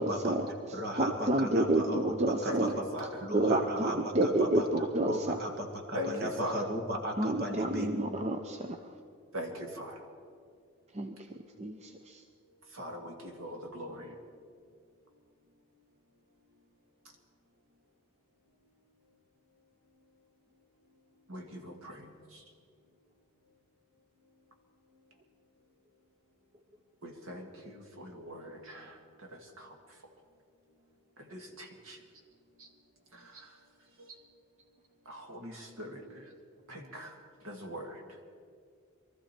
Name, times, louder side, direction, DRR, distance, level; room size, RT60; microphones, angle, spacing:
voice 1, 0.0-2.8 3.3-5.4 7.2-8.8 10.9-12.2, right 1 dB, 30° right, 5 dB, 0.6 m, -30 dB
voice 2, 0.7-4.7 5.0-7.9, equal, 45° right, 2 dB, 1.8 m, -36 dB
voice 3, 2.5-3.2 5.9-6.7 9.3-10.0 12.7-14.2 21.3-22.4 27.0-30.0 31.2-32.0 32.6-32.7 33.1-33.6 34.0-34.2 35.1-36.3 36.7-38.2, equal, 75° right, 2 dB, 2.1 m, -42 dB
23.5 x 13.5 x 4.4 m, 2.3 s
head